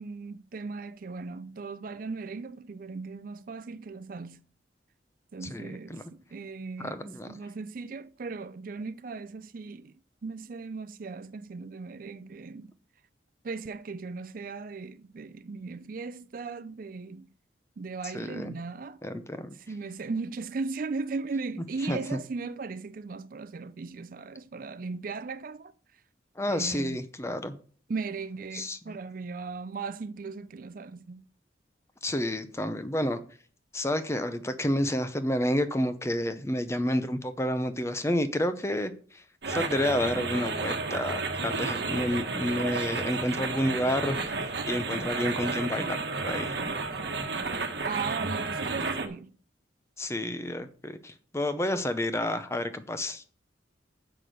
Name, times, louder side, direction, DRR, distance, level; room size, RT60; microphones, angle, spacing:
voice 1, 0.0-4.4 5.3-9.9 10.2-12.7 13.4-17.3 17.8-19.0 19.7-25.7 26.5-27.0 27.9-31.2 47.8-49.4, right 4 dB, 50° right, 0.4 m, -37 dB
voice 2, 5.4-6.0 6.8-7.4 18.1-18.6 19.0-19.6 21.8-22.2 26.4-27.6 28.5-29.0 32.0-33.2 33.7-46.6 50.0-53.2, left 1 dB, 15° left, 0.6 m, -30 dB
sound 1, 39.4-49.1, right 3 dB, 65° right, 1.2 m, -32 dB
6.9 x 5.8 x 6.3 m
head